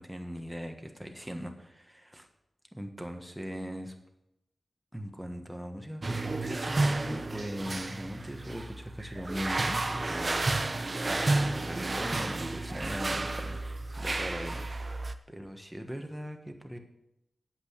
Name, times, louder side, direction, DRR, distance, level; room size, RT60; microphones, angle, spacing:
voice 1, 0.0-2.3 2.7-3.9 4.9-16.8, equal, 5° right, 4 dB, 1.5 m, -40 dB
sound 1, 6.0-15.1, right 2 dB, 35° right, 0.7 m, -31 dB
9.0 x 8.0 x 8.2 m, 0.85 s
wide cardioid pair, 110°, 0 cm